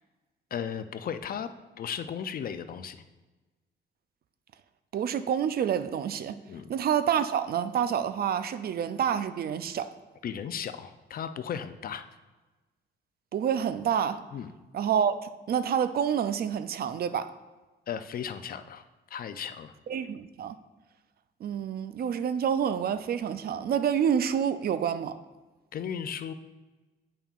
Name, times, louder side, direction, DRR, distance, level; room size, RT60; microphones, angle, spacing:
voice 1, 0.5-1.5 1.8-3.0 6.5-6.7 10.2-12.1 14.3-14.5 17.9-18.8 19.1-19.7 25.7-26.3, left 8 dB, 50° left, 0.4 m, -35 dB
voice 2, 4.9-6.4 6.7-9.9 13.3-14.2 14.7-17.3 19.9-20.6 21.4-25.2, right 8 dB, 50° right, 0.4 m, -28 dB
8.6 x 5.5 x 2.4 m
cardioid pair, 90°, 20 cm